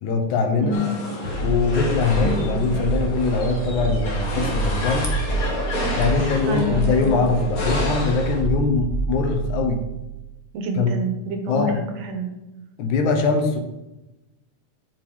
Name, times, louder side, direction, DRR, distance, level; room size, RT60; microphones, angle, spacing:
voice 1, 0.0-0.8 1.4-5.1 5.9-9.8 10.8-10.9 11.5-11.8 12.8-13.6, left 4 dB, 75° left, 5 dB, 2.4 m, -22 dB
voice 2, 0.6-1.0 2.2-2.7 6.4-7.1 10.5-12.3, right 1 dB, 70° right, 5 dB, 2.0 m, -27 dB
sound 1, 0.7-8.4, left 2 dB, 45° left, 1.2 m, -30 dB
sound 2, 1.2-10.3, right 4 dB, 60° left, 2.5 m, -27 dB
7.5 x 7.0 x 4.7 m, 0.99 s
omnidirectional pair, 3.5 m